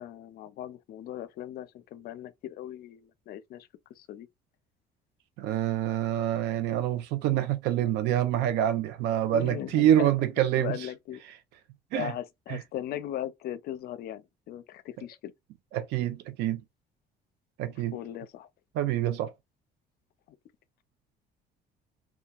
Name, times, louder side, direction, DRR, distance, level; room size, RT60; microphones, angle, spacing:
voice 1, 0.0-3.7 4.0-4.3 9.3-10.1 10.6-11.2 11.9-15.3 17.9-18.5, left 11 dB, 65° left, 0.5 m, -38 dB
voice 2, 5.4-10.9 11.9-12.1 12.5-12.6 15.7-16.6 17.6-18.0 18.7-19.3, right 11 dB, 85° right, 0.5 m, -26 dB
2.8 x 2.2 x 2.2 m
cardioid pair, 110°, 17 cm